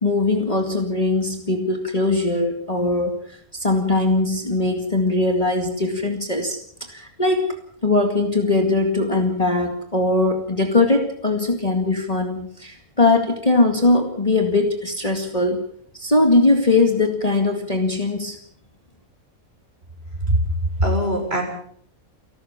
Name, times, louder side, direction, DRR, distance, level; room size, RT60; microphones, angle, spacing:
voice 1, 0.0-3.2 3.5-15.6 15.9-18.4, left 2 dB, 25° left, 4 dB, 2.2 m, -20 dB
voice 2, 20.3-21.4, equal, 40° right, 2 dB, 7.2 m, -21 dB
29.0 x 13.0 x 7.3 m, 0.64 s
omnidirectional pair, 1.6 m